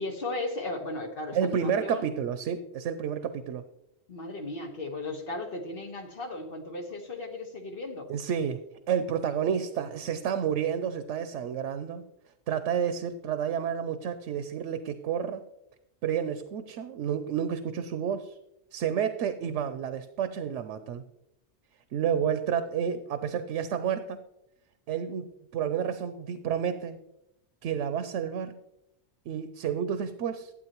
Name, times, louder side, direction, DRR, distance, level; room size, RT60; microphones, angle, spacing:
voice 1, 0.0-2.0 4.1-8.1, left 2 dB, 50° left, 3 dB, 1.5 m, -36 dB
voice 2, 1.3-3.6 8.1-8.6 8.9-12.0 12.5-15.4 16.0-18.4 18.7-21.0 21.9-24.2 24.9-25.3 25.5-27.0 27.6-28.6 29.3-30.5, right 8 dB, 90° right, 11 dB, 0.9 m, -30 dB
12.5 x 8.4 x 3.0 m, 0.85 s
omnidirectional pair, 1.2 m